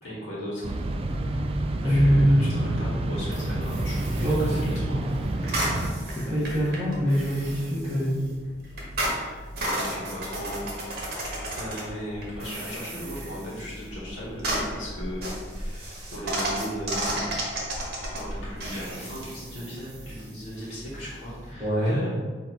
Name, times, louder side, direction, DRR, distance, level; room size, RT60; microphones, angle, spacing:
voice 1, 0.0-0.7 1.8-5.1 9.0-11.3 11.6-17.3 18.1-22.1, equal, 80° left, -8 dB, 1.3 m, -37 dB
sound 1, 0.6-5.9, right 1 dB, 30° right, 0.3 m, -28 dB
voice 2, 1.8-2.5 4.2-4.5 6.1-8.2 21.6-22.0, equal, 10° right, -13 dB, 1.4 m, -23 dB
sound 2, 3.3-21.5, right 1 dB, 55° right, 1.2 m, -34 dB
4.2 x 2.8 x 4.6 m, 1.5 s
head